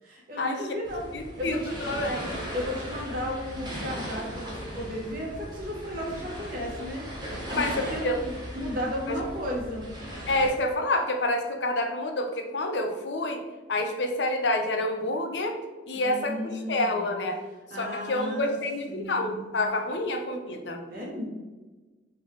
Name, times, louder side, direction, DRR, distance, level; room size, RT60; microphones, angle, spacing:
voice 1, 0.0-1.0 1.4-1.8 2.5-7.0 7.5-8.1 8.5-9.8 15.9-17.1 17.7-18.6 18.9-19.5 20.9-21.2, left 1 dB, 55° right, -2 dB, 1.3 m, -34 dB
sound 1, 0.8-10.5, equal, 25° right, 1.1 m, -37 dB
voice 2, 1.1-2.3 7.5-8.2 9.1-9.2 10.3-13.4 13.7-15.6 15.9-17.4 17.7-20.8, left 1 dB, 70° left, 4 dB, 0.6 m, -28 dB
3.9 x 3.5 x 3.2 m, 1.2 s
head